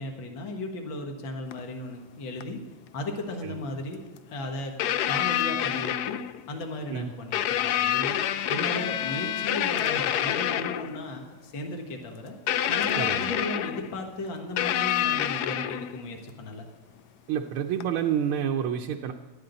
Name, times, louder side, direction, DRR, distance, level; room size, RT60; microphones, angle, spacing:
voice 1, 0.0-2.6 2.9-4.7 5.0-6.2 6.5-8.2 8.5-12.4 12.7-16.7, left 2 dB, 65° left, 2 dB, 2.4 m, -35 dB
sound 1, 1.5-1.6 2.4-2.5 4.2-4.3 4.8-6.5 7.3-11.0 12.5-14.0 14.6-16.1 17.8-17.9, left 11 dB, 85° left, 0.8 m, -27 dB
voice 2, 17.3-19.1, right 9 dB, 80° right, 3 dB, 1.6 m, -28 dB
18.5 x 12.5 x 4.0 m, 1.4 s
omnidirectional pair, 2.4 m